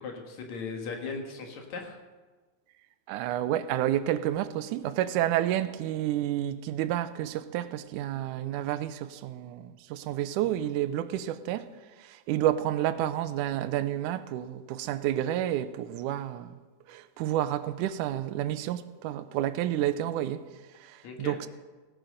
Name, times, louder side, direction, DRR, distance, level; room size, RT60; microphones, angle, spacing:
voice 1, 0.0-2.0 21.0-21.4, left 4 dB, 65° left, 2.8 m, -38 dB
voice 2, 3.1-11.7 12.0-16.6 16.9-20.4 20.8-21.5, right 12 dB, 85° right, 2.1 m, -30 dB
17.0 x 9.0 x 6.4 m
omnidirectional pair, 3.5 m